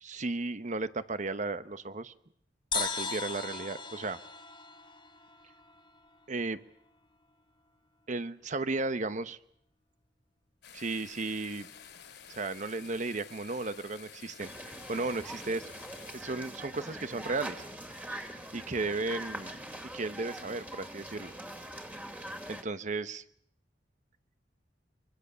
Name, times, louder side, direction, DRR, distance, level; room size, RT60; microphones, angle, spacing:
voice 1, 0.0-2.1 2.7-4.2 6.3-6.6 8.1-9.4 10.7-11.7 12.3-15.7 16.1-17.6 18.5-19.6 19.9-21.3 22.5-23.2, right 3 dB, 45° right, 12 dB, 1.0 m, -34 dB
sound 1, 2.7-6.2, left 5 dB, 30° left, 2.0 m, -38 dB
sound 2, 10.6-16.2, left 7 dB, 75° left, 3.6 m, -51 dB
sound 3, 14.4-22.6, right 1 dB, 10° right, 2.3 m, -43 dB
24.5 x 24.0 x 6.9 m, 0.68 s
head